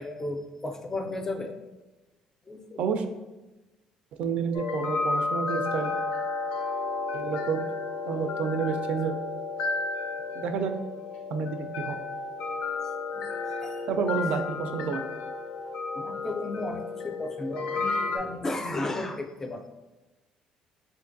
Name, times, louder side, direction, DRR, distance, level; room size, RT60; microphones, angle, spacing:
voice 1, 0.0-1.5 2.4-2.9 13.1-13.9 15.9-19.7, left 2 dB, 20° left, 5 dB, 0.3 m, -34 dB
voice 2, 4.2-5.9 7.1-7.6 8.0-9.1 10.3-10.7 11.3-12.0 13.9-15.0, right 6 dB, 60° right, 7 dB, 0.3 m, -29 dB
sound 1, 4.5-18.2, left 3 dB, 85° left, 0.5 m, -32 dB
4.4 x 2.5 x 2.5 m, 1.1 s
cardioid pair, 130°, 2 cm